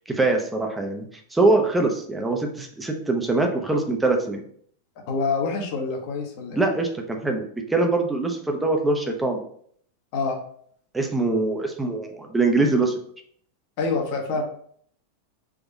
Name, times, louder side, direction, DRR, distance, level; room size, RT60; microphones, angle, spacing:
voice 1, 0.1-1.1 1.3-4.4 6.5-7.4 7.7-9.4 10.9-12.9, right 2 dB, 10° right, 3 dB, 0.7 m, -23 dB
voice 2, 5.1-6.7 10.1-10.4 13.8-14.4, left 4 dB, 45° left, 3 dB, 0.9 m, -26 dB
3.6 x 3.4 x 4.0 m, 0.62 s
figure-of-eight pair, 90°, 0 cm